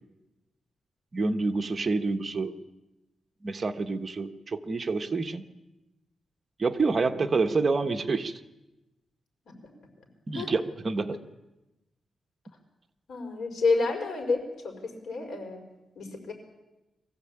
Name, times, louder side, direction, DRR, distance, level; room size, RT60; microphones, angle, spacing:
voice 1, 1.1-2.5 3.4-5.4 6.6-8.4 10.3-11.2, right 4 dB, 35° right, 7 dB, 1.2 m, -28 dB
voice 2, 13.1-14.7 15.0-15.6 16.0-16.3, left 3 dB, 75° left, 3 dB, 5.4 m, -29 dB
23.5 x 15.5 x 8.8 m, 1.0 s
cardioid pair, 110°, 0 cm